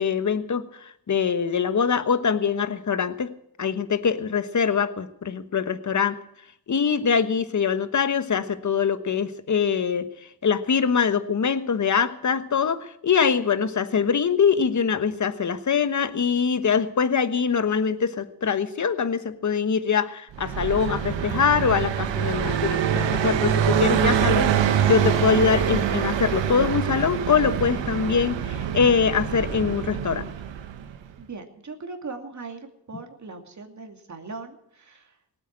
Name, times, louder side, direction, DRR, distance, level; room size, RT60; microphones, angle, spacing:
voice 1, 0.0-3.3 3.6-6.2 6.7-10.1 10.4-30.3, left 6 dB, 40° left, 12 dB, 1.2 m, -23 dB
Car passing by, 20.3-31.0, right 9 dB, 85° right, 1.3 m, -25 dB
voice 2, 31.2-35.2, right 4 dB, 40° right, 4 dB, 2.5 m, -39 dB
18.5 x 8.4 x 8.7 m, 0.78 s
cardioid pair, 75°, 43 cm